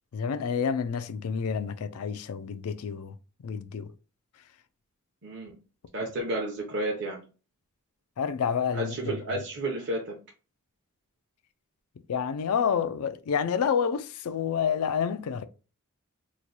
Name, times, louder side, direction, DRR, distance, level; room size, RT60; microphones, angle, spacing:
voice 1, 0.1-3.2 3.4-3.9 8.2-9.1 12.1-15.5, left 7 dB, 75° left, 0.4 m, -29 dB
voice 2, 5.2-5.6 5.9-7.2 8.7-10.2, right 1 dB, 55° right, 0.7 m, -31 dB
3.0 x 2.2 x 4.0 m
head